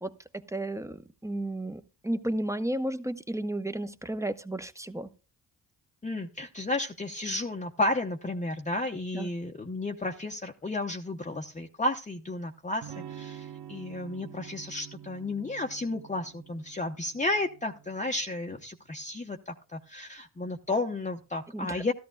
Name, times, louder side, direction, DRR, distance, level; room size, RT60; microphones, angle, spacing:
voice 1, 0.0-5.1 9.1-9.3 21.5-21.8, right 1 dB, 10° right, 11 dB, 0.9 m, -33 dB
voice 2, 6.0-21.9, left 2 dB, 20° left, 2 dB, 0.9 m, -32 dB
Electric guitar / Strum, 12.8-18.5, right 10 dB, 85° right, 0.9 m, -47 dB
14.0 x 13.0 x 2.3 m, 0.34 s
supercardioid pair, 55°, 40 cm